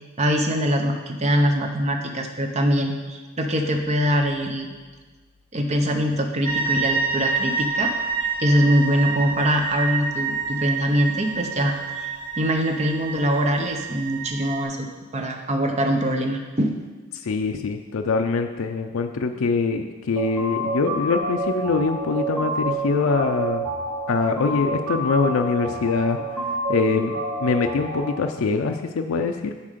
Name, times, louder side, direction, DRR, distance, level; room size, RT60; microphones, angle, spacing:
voice 1, 0.2-4.7 5.5-7.9 8.4-14.9 15.1-16.7, equal, 30° right, 4 dB, 0.7 m, -23 dB
sound 1, 6.4-14.6, right 5 dB, 10° left, 1.3 m, -28 dB
voice 2, 17.1-23.7 24.1-26.2 26.7-29.5, left 4 dB, 70° left, 5 dB, 0.4 m, -23 dB
sound 2, 20.2-28.2, right 2 dB, 85° right, 1.6 m, -29 dB
7.2 x 4.3 x 6.6 m, 1.4 s
head